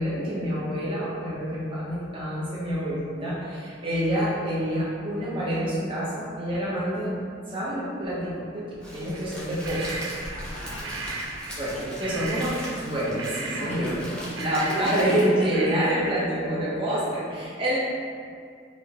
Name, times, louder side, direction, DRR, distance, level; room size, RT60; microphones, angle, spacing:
voice 1, 0.0-7.1 7.5-8.7 8.9-10.0 11.6-14.0 14.4-17.8, equal, 30° right, -9 dB, 1.2 m, -27 dB
Crackle, 8.8-15.5, equal, 5° left, 0.9 m, -40 dB
sound 1, 9.1-11.7 12.0-15.3 15.5-16.5, right 3 dB, 85° right, 0.5 m, -36 dB
voice 2, 10.3-10.9 11.7-12.1 13.6-16.1, right 2 dB, 40° left, -6 dB, 0.8 m, -36 dB
5.0 x 2.6 x 3.7 m, 2.3 s
head